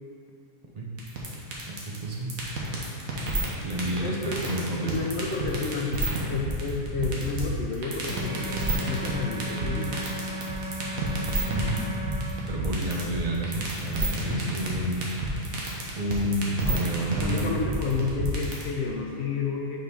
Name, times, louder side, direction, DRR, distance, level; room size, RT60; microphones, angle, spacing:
sound 1, 1.0-18.6, right 2 dB, 75° right, 1.5 m, -29 dB
voice 1, 1.7-2.4 3.6-5.0 11.5-11.8 12.5-15.1 16.0-17.6, right 1 dB, 35° right, -2 dB, 0.6 m, -30 dB
voice 2, 4.0-4.4 4.8-6.0 6.3-10.1 17.0-19.8, left 4 dB, 60° left, -1 dB, 0.8 m, -31 dB
sound 2, 8.1-12.2, right 1 dB, 10° left, 0.6 m, -36 dB
5.3 x 4.1 x 5.3 m, 2.6 s
omnidirectional pair, 1.5 m